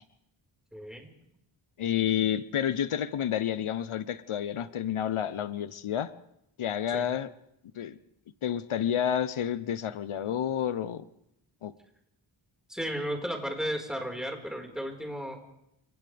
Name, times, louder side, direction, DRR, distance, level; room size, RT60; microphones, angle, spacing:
voice 1, 0.7-1.1 6.9-7.1 12.7-15.4, equal, ahead, 1 dB, 4.8 m, -34 dB
voice 2, 1.8-6.1 6.6-7.3 7.8-8.0 8.4-11.0 11.6-11.7, left 9 dB, 90° left, 14 dB, 0.9 m, -29 dB
29.5 x 26.5 x 3.5 m, 0.81 s
wide cardioid pair, 90°, 48 cm